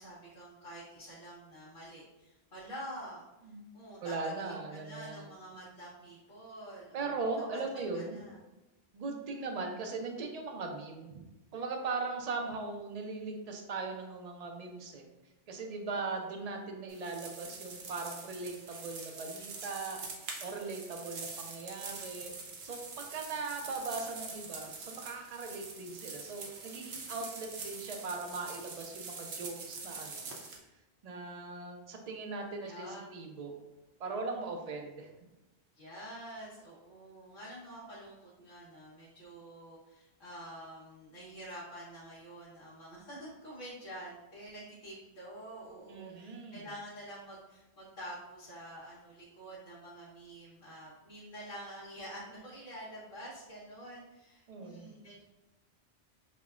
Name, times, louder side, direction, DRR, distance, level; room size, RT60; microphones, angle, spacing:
voice 1, 0.0-3.2 3.7-7.2 7.5-8.4 32.6-33.0 35.7-55.2, equal, 55° left, -9 dB, 1.1 m, -47 dB
voice 2, 4.0-5.3 6.9-8.2 8.9-11.2 11.5-15.0 15.5-20.0 20.4-22.3 22.6-30.3 31.0-33.5 34.0-35.1 45.9-46.7 54.5-55.0, right 3 dB, 50° right, 3 dB, 0.5 m, -39 dB
sound 1, 16.9-30.6, right 4 dB, 75° right, 0.9 m, -45 dB
5.5 x 2.2 x 2.4 m, 1.0 s
omnidirectional pair, 1.1 m